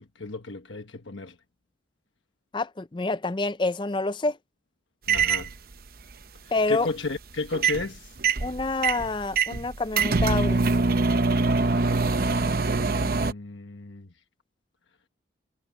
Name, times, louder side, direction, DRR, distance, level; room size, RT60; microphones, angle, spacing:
voice 1, 0.0-1.4 5.1-5.5 6.7-8.1 12.8-14.1, left 3 dB, 90° left, 1.3 m, -34 dB
voice 2, 2.5-4.4 6.5-6.9 8.4-10.6, left 3 dB, 25° left, 0.5 m, -27 dB
sound 1, 5.1-5.5 7.5-7.9 8.2-13.3, right 4 dB, 50° right, 0.8 m, -24 dB
head